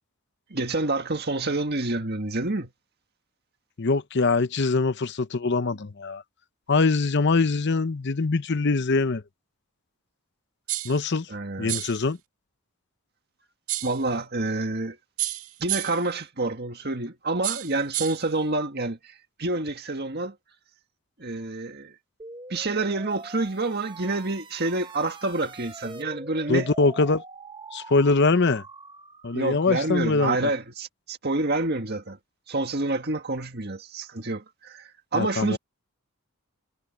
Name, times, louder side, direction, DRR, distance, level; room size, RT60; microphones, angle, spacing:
voice 1, 0.5-2.7 11.3-11.8 13.8-15.0 15.6-20.4 21.2-22.0 22.5-26.7 29.3-32.2 32.5-35.6, right 2 dB, 45° right, 1.8 m, -28 dB
voice 2, 3.8-6.2 6.7-9.2 10.8-11.3 11.6-12.2 26.5-27.2 27.7-28.6 29.2-30.4 35.1-35.6, left 3 dB, 50° left, 0.8 m, -23 dB
sound 1, 10.7-11.0 11.7-12.0 13.7-14.0 15.2-16.1 17.4-18.3, right 15 dB, 75° right, 2.2 m, -30 dB
sound 2, 22.2-29.7, right 3 dB, 20° right, 1.0 m, -43 dB
head